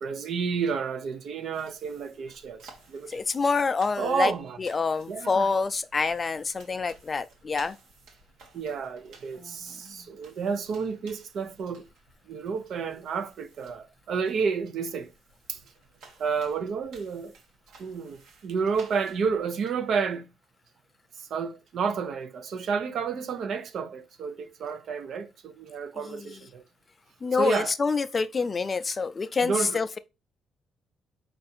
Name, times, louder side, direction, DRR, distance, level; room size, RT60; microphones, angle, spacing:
voice 1, 0.0-3.2 4.0-4.6 5.1-5.5 8.5-11.9 12.3-15.1 15.5-15.6 16.2-17.3 17.8-20.3 21.2-26.6 27.4-27.7 29.4-29.8, right 5 dB, 65° right, 0.6 m, -31 dB
sound 1, 1.5-19.4, right 3 dB, 85° right, 1.1 m, -56 dB
voice 2, 3.1-4.3 4.6-7.8 9.4-10.0 26.1-26.4 27.2-30.0, left 4 dB, 35° left, 0.4 m, -27 dB
4.5 x 2.5 x 4.1 m
cardioid pair, 90°, 0 cm